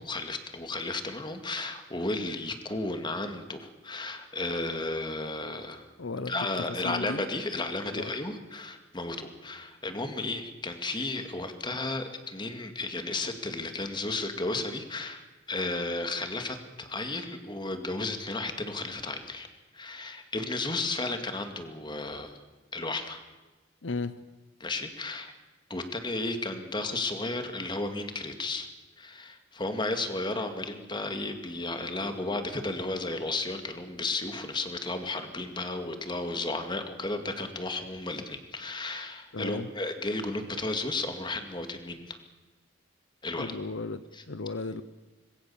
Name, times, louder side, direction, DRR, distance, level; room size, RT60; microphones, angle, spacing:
voice 1, 0.0-5.9 6.3-19.5 19.7-22.4 22.7-23.2 24.6-25.3 25.7-28.7 29.0-42.2 43.2-43.5 44.1-44.2, left 2 dB, 25° left, 7 dB, 2.3 m, -33 dB
voice 2, 6.0-6.5 6.8-7.2 7.9-8.1 23.8-24.2 39.3-39.7 43.4-44.8, left 3 dB, 75° left, 13 dB, 0.9 m, -35 dB
26.0 x 21.0 x 7.2 m, 1.2 s
head